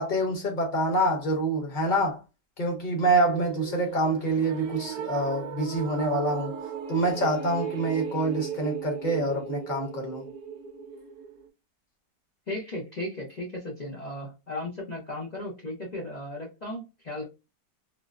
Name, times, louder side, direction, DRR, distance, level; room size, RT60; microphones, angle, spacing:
voice 1, 0.0-2.2 2.6-6.5 6.9-10.3, right 1 dB, 35° left, 0.9 m, -26 dB
sound 1, 3.2-11.5, right 8 dB, 65° right, 1.0 m, -37 dB
voice 2, 12.5-17.2, left 1 dB, 85° left, 0.3 m, -36 dB
3.7 x 2.0 x 2.4 m
omnidirectional pair, 1.8 m